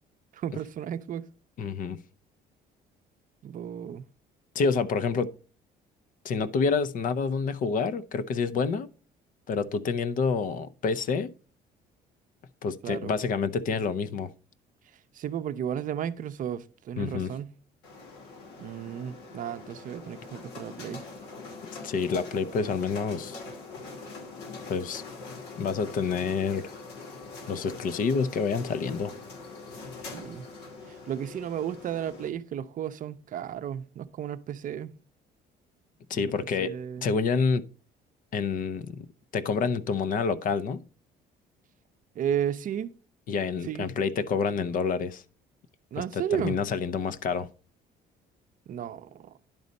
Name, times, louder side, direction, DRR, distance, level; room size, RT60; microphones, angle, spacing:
voice 1, 0.3-1.2 3.4-4.0 12.8-13.1 15.1-17.5 18.6-21.0 30.0-30.5 30.9-34.9 36.1-36.3 36.6-37.1 42.2-42.9 43.6-43.9 45.9-46.6 48.7-49.4, right 9 dB, 50° right, 0.6 m, -33 dB
voice 2, 1.6-2.0 4.5-5.3 6.2-8.9 9.5-11.3 12.6-14.3 17.0-17.3 21.8-23.4 24.7-25.0 25.6-26.7 27.5-29.1 36.1-36.8 37.0-37.7 38.3-39.1 39.3-40.8 43.3-45.2 46.0-47.5, left 5 dB, 55° left, 0.6 m, -28 dB
sound 1, 17.8-32.3, left 3 dB, 80° left, 2.5 m, -43 dB
10.5 x 4.1 x 5.2 m
cardioid pair, 110°, 17 cm